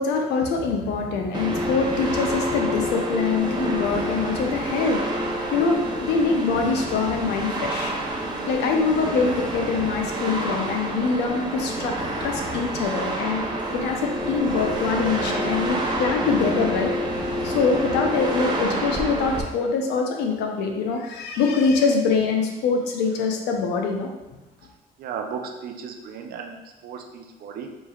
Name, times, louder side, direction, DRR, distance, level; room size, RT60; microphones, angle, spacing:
voice 1, 0.0-5.2 5.5-7.9 8.5-11.9 12.2-13.5 13.8-16.9 17.4-24.1, left 4 dB, 85° left, 2 dB, 0.7 m, -24 dB
sound 1, 1.3-19.4, right 1 dB, 25° right, 0.7 m, -28 dB
voice 2, 25.0-27.7, right 6 dB, 65° right, 3 dB, 0.6 m, -35 dB
5.2 x 3.3 x 2.4 m, 1.0 s
cardioid pair, 110°, 17 cm